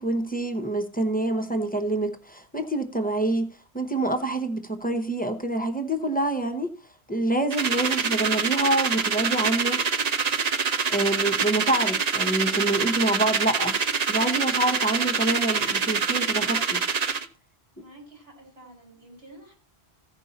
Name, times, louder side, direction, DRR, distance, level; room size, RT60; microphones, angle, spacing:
voice 1, 0.0-3.5 3.7-6.7 7.1-9.8 10.9-16.8, right 2 dB, 10° left, 0.8 m, -26 dB
sound 1, 7.5-17.3, right 5 dB, 45° right, 0.7 m, -25 dB
voice 2, 17.8-19.5, right 1 dB, 70° right, 3.9 m, -49 dB
15.5 x 5.4 x 4.1 m
omnidirectional pair, 1.1 m